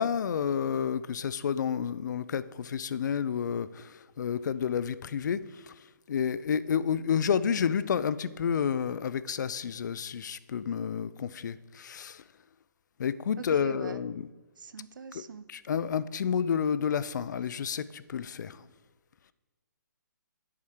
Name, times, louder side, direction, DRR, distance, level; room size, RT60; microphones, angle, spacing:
voice 1, 0.0-5.7 6.1-12.2 13.0-14.3 15.1-15.2 15.5-18.6, left 7 dB, 65° left, 16 dB, 0.4 m, -30 dB
voice 2, 13.6-14.0 14.6-15.4, right 6 dB, 85° right, 14 dB, 0.5 m, -42 dB
7.2 x 5.0 x 4.3 m, 1.3 s
hypercardioid pair, 160°, 10 cm